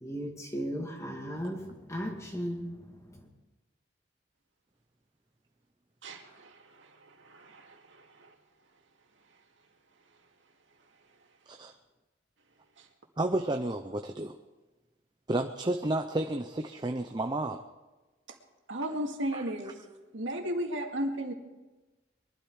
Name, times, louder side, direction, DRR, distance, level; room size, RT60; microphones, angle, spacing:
voice 1, 0.0-2.7 3.1-3.2, equal, 15° left, 1 dB, 2.3 m, -36 dB
voice 2, 6.0-8.3 12.8-12.9 18.7-19.8 20.1-21.3, equal, 85° right, 2 dB, 2.3 m, -35 dB
voice 3, 13.2-14.4 15.3-17.6 19.3-19.4, right 2 dB, 25° right, 6 dB, 0.6 m, -31 dB
22.5 x 12.5 x 4.8 m, 1.1 s
head